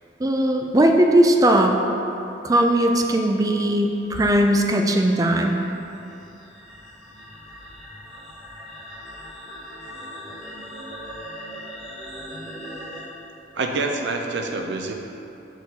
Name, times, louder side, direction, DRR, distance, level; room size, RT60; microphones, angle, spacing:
voice 1, 0.2-1.7 2.4-5.6, right 1 dB, 20° right, 3 dB, 0.4 m, -18 dB
sound 1, 3.7-13.0, equal, 5° left, 1.3 m, -40 dB
voice 2, 13.6-14.9, right 3 dB, 75° right, 3 dB, 0.6 m, -26 dB
6.2 x 4.5 x 4.1 m, 2.9 s
head